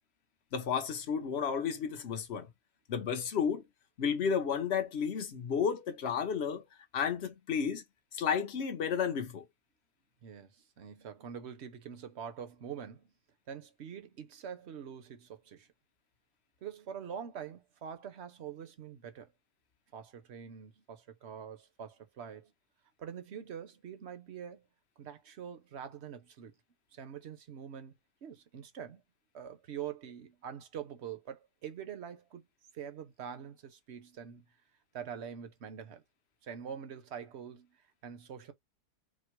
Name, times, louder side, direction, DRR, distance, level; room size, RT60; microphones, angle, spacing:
voice 1, 0.5-2.5 2.9-3.6 4.0-6.6 6.9-7.8 8.1-9.5, left 7 dB, 50° left, 0.9 m, -32 dB
voice 2, 10.2-13.1 13.5-15.7 16.6-19.3 19.9-22.5 23.0-24.7 25.0-26.5 26.9-27.9 28.2-29.0 29.3-32.4 32.7-34.4 34.9-36.0 36.4-37.8 38.0-38.5, right 8 dB, 50° right, 0.9 m, -45 dB
4.3 x 2.0 x 4.5 m
omnidirectional pair, 1.7 m